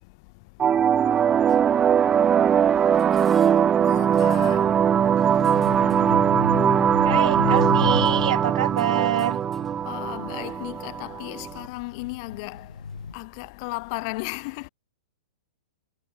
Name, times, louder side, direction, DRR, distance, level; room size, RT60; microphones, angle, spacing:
sound 1, 0.6-11.6, right 8 dB, 20° right, 0.8 m, -21 dB
sound 2, 1.5-13.6, left 2 dB, 5° left, 6.1 m, -56 dB
voice 1, 3.7-4.9 5.3-5.4 5.7-6.2 9.9-12.7 13.1-14.7, left 28 dB, 45° left, 3.5 m, -35 dB
sound 3, 5.2-10.7 11.3-13.1, left 5 dB, 80° left, 1.3 m, -32 dB
voice 2, 7.0-9.4, right 11 dB, 60° right, 1.5 m, -26 dB
figure-of-eight pair, 110°, 4 cm